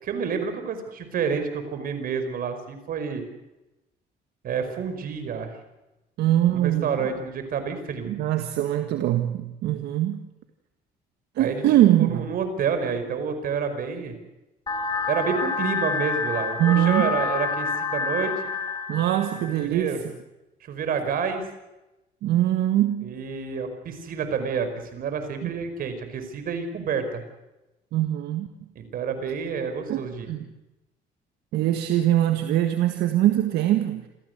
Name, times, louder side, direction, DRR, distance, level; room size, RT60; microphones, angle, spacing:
voice 1, 0.0-3.2 4.4-5.5 6.5-8.1 11.4-11.7 12.0-14.2 15.1-18.4 19.4-20.0 20.6-21.5 23.0-27.2 28.8-30.3, right 6 dB, 60° right, 8 dB, 5.1 m, -29 dB
voice 2, 6.2-6.9 8.1-10.3 11.4-12.3 16.6-17.1 18.9-20.0 22.2-23.2 25.4-25.5 27.9-28.5 29.9-30.5 31.5-34.1, right 13 dB, 80° right, 7 dB, 1.7 m, -22 dB
sound 1, 14.7-19.7, left 4 dB, 25° left, 4.6 m, -28 dB
27.0 x 16.0 x 8.1 m, 0.97 s
cardioid pair, 110°, 17 cm